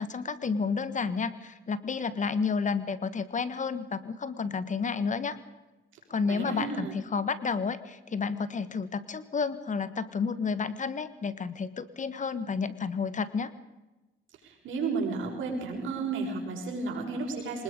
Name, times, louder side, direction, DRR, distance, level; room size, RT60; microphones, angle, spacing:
voice 1, 0.0-5.4 6.1-13.5, left 5 dB, 40° left, 14 dB, 1.4 m, -31 dB
voice 2, 6.3-7.0 14.4-17.6, right 4 dB, 80° right, 1 dB, 6.6 m, -33 dB
25.0 x 20.0 x 5.3 m, 1.1 s
cardioid pair, 90°, 20 cm